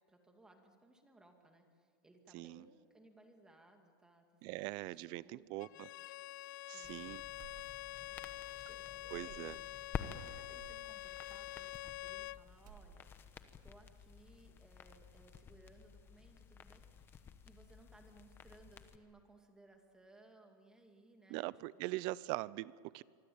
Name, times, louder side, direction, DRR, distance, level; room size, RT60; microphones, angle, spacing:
voice 1, 0.1-5.9 6.5-7.1 8.0-9.6 9.9-13.1 13.6-21.8, right 2 dB, 5° right, 3 dB, 2.3 m, -63 dB
voice 2, 4.4-5.9 6.7-7.2 9.1-9.5 21.3-23.0, right 19 dB, 40° right, 21 dB, 0.5 m, -42 dB
Bowed string instrument, 5.6-12.4, left 16 dB, 60° left, 0.6 m, -47 dB
sound 1, 6.8-19.0, left 7 dB, 20° left, 1.1 m, -51 dB
sound 2, 7.4-8.1 8.3-8.5 9.1-9.7 10.6-10.9 11.7-12.3 12.5-13.3, right 13 dB, 60° right, 2.7 m, -59 dB
25.0 x 24.5 x 8.7 m, 2.3 s
supercardioid pair, 165°, 12 cm